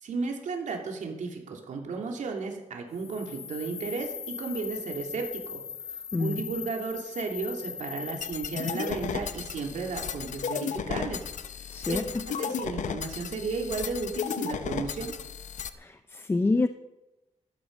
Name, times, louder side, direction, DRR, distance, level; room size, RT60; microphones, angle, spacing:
voice 1, 0.0-5.6 5.9-11.2 11.9-12.0 12.3-15.1, right 4 dB, 85° right, 2 dB, 2.9 m, -34 dB
sound 1, 2.9-9.2, left 8 dB, 55° left, 1.0 m, -40 dB
sound 2, 8.2-15.7, left 7 dB, 85° left, 0.8 m, -34 dB
voice 2, 11.7-12.0 15.8-16.7, left 3 dB, 20° left, 10 dB, 0.5 m, -27 dB
16.0 x 12.5 x 5.4 m, 1.0 s
wide cardioid pair, 160°, 12 cm